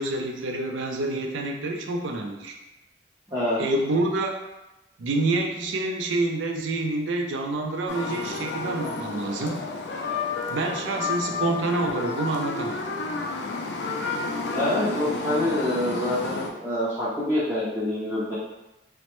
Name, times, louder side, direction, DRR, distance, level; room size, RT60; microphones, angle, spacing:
voice 1, 0.0-2.5 3.6-4.4 5.0-9.6 10.5-12.8, right 2 dB, 80° right, 3 dB, 0.4 m, -27 dB
voice 2, 3.3-3.6 14.5-18.4, left 1 dB, 15° right, -10 dB, 0.5 m, -26 dB
sound 1, 7.9-16.5, left 4 dB, 65° left, 0.3 m, -31 dB
3.0 x 2.1 x 2.9 m, 0.96 s
head